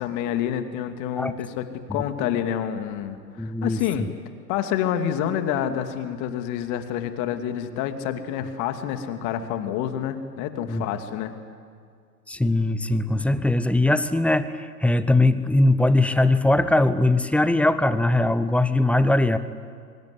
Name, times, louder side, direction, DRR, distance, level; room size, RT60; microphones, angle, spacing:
voice 1, 0.0-4.1 4.5-11.3, left 10 dB, 40° left, 8 dB, 2.6 m, -28 dB
voice 2, 1.9-2.4 3.4-4.1 10.7-10.9 12.3-19.4, left 2 dB, 5° left, 13 dB, 0.7 m, -21 dB
24.5 x 24.0 x 10.0 m, 2.2 s
hypercardioid pair, 110°, 48 cm